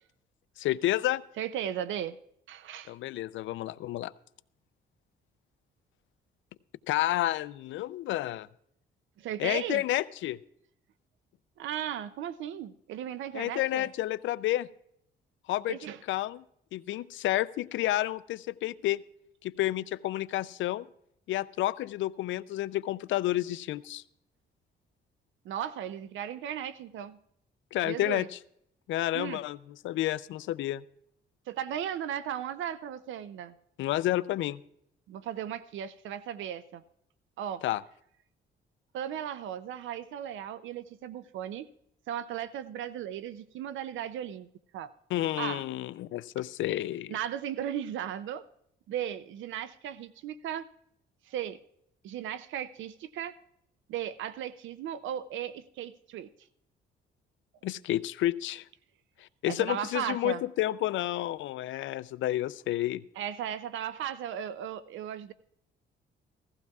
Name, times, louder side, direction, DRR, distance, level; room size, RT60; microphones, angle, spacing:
voice 1, 0.6-1.2 2.9-4.1 6.9-8.5 9.4-10.4 13.3-14.7 15.5-15.8 16.1-16.4 16.7-19.0 19.4-20.9 21.3-24.0 27.7-28.3 28.9-29.6 29.8-30.8 33.8-34.6 37.6-37.8 45.1-47.1 57.6-58.6 59.2-63.0, left 14 dB, 75° left, 17 dB, 0.4 m, -30 dB
voice 2, 1.4-2.2 2.5-2.9 9.2-9.8 11.6-13.9 15.7-16.0 16.9-17.0 25.4-27.2 27.8-28.3 29.1-29.4 31.5-33.5 35.1-36.8 37.4-37.6 38.9-41.7 42.1-44.5 44.7-44.9 45.4-45.6 47.1-48.4 48.9-50.7 51.3-51.6 52.0-53.4 53.9-56.3 59.5-60.4 63.2-65.3, right 10 dB, 75° right, 15 dB, 0.5 m, -36 dB
16.0 x 14.5 x 2.4 m, 0.73 s
cardioid pair, 90°, 20 cm